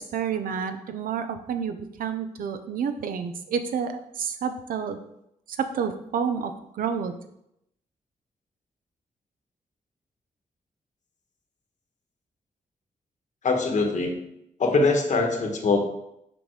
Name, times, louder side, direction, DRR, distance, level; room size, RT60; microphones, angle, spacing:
voice 1, 0.0-5.0 5.6-7.1, right 7 dB, 85° right, 8 dB, 0.6 m, -29 dB
voice 2, 13.4-14.2 14.6-15.9, left 3 dB, 60° left, 3 dB, 1.3 m, -22 dB
6.8 x 5.4 x 3.2 m, 0.78 s
cardioid pair, 90°, 14 cm